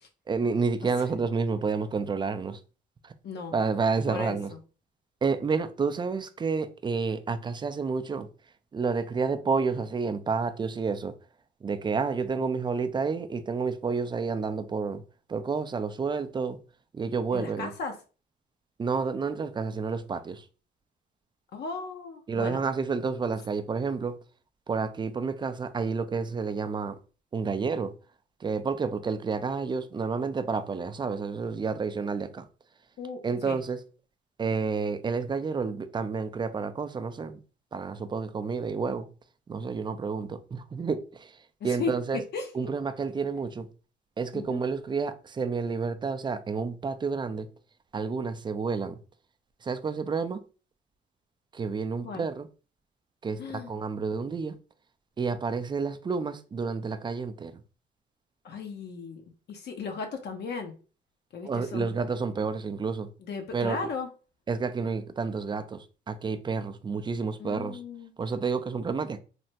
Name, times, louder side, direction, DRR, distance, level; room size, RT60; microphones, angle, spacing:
voice 1, 0.3-2.6 3.0-3.1 3.5-4.5 5.2-8.3 8.7-11.1 11.6-15.0 15.3-16.6 16.9-17.7 18.8-20.4 22.3-24.1 24.7-27.0 27.3-27.9 28.4-32.5 33.2-33.8 34.4-37.4 37.7-39.1 39.5-41.4 41.6-42.2 42.5-43.7 44.2-47.5 47.9-49.0 49.6-50.4 51.5-52.5 53.2-54.6 55.2-57.6 61.4-63.1 63.5-63.8 64.5-67.8 68.2-69.2, right 5 dB, 25° right, 0.3 m, -30 dB
voice 2, 4.1-4.6 17.3-17.9 21.5-22.6 33.0-33.2 33.4-33.6 41.6-41.9 42.3-42.7 44.3-44.6 52.0-52.3 53.4-53.8 58.4-59.2 59.5-60.8 61.3-62.0 63.3-64.1 67.4-68.1, left 4 dB, 55° left, 0.6 m, -36 dB
3.2 x 2.1 x 2.7 m
cardioid pair, 90°, 20 cm